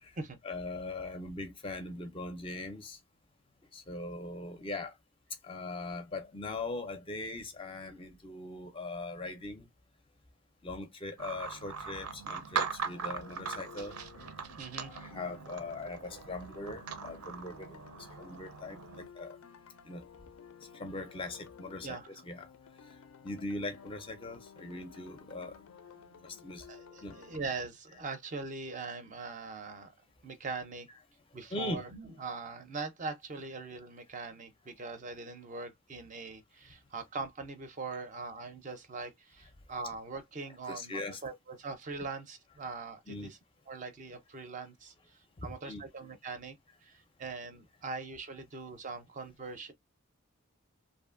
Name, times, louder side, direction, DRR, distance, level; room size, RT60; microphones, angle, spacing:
voice 1, 0.4-3.0 3.7-4.9 5.4-9.7 10.6-14.0 14.8-17.8 18.2-19.4 19.8-20.0 20.7-22.5 23.2-25.6 26.2-26.7 27.0-27.2 31.5-31.8 40.4-41.2 43.1-43.3 45.4-45.8, left 2 dB, 25° left, 0.4 m, -40 dB
sound 1, 11.2-19.1, right 6 dB, 90° right, 0.6 m, -40 dB
sound 2, 12.8-27.6, left 7 dB, 85° left, 0.4 m, -54 dB
voice 2, 14.6-15.1 21.8-22.2 26.1-29.9 30.2-30.9 31.3-43.4 43.7-46.6 46.8-49.7, right 4 dB, 35° right, 0.4 m, -42 dB
2.6 x 2.5 x 2.4 m
head